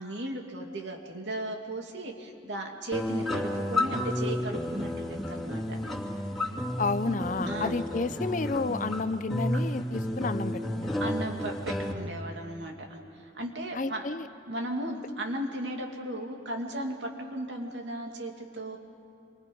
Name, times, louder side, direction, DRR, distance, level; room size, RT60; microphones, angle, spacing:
voice 1, 0.0-5.8 7.4-7.8 9.5-9.6 11.0-14.1 14.5-18.8, right 1 dB, 80° right, 2 dB, 2.7 m, -36 dB
sound 1, 2.9-11.9, left 1 dB, ahead, 2.8 m, -31 dB
voice 2, 6.8-11.1 13.7-14.3, left 3 dB, 45° left, 13 dB, 0.6 m, -31 dB
28.0 x 24.5 x 5.5 m, 2.7 s
head